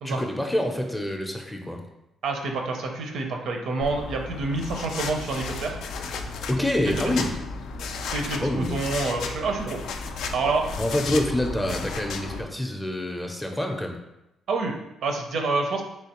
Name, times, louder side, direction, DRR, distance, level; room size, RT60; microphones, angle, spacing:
voice 1, 0.0-1.8 6.5-7.3 8.4-8.8 10.8-14.0, left 1 dB, 10° left, 3 dB, 0.5 m, -26 dB
voice 2, 2.2-5.8 7.0-7.3 8.1-9.8 10.3-10.7 14.5-15.8, right 3 dB, 70° right, 3 dB, 0.5 m, -28 dB
sound 1, 3.8-12.4, left 4 dB, 80° left, 0.3 m, -34 dB
3.1 x 3.1 x 2.9 m, 0.90 s
cardioid pair, 90°, 0 cm